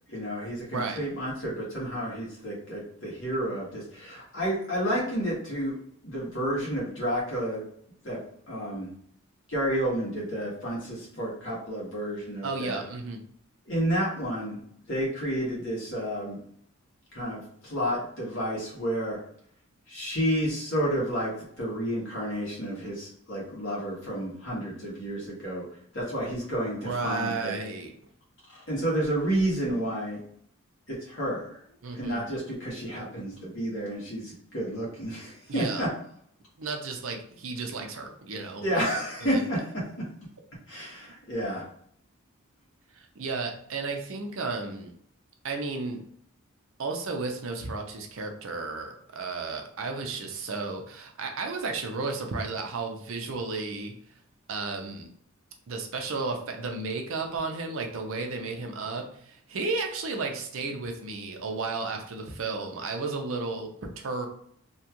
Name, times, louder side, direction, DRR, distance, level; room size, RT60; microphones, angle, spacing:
voice 1, 0.1-5.8 6.0-7.6 8.0-8.2 8.5-8.9 9.5-12.8 13.7-14.6 14.9-16.4 17.1-19.2 19.9-21.3 21.6-25.6 25.9-27.6 28.7-30.2 30.9-31.6 31.9-35.9 38.6-39.6 40.7-41.6, equal, 60° left, -5 dB, 1.3 m, -30 dB
voice 2, 12.4-13.2 26.8-27.9 31.8-32.2 35.5-35.9 36.6-38.8 39.2-39.4 43.0-44.9 45.4-46.0 46.8-53.9 54.5-55.1 55.7-63.7 64.0-64.3, right 3 dB, 70° right, 3 dB, 0.6 m, -33 dB
2.9 x 2.3 x 2.9 m, 0.65 s
head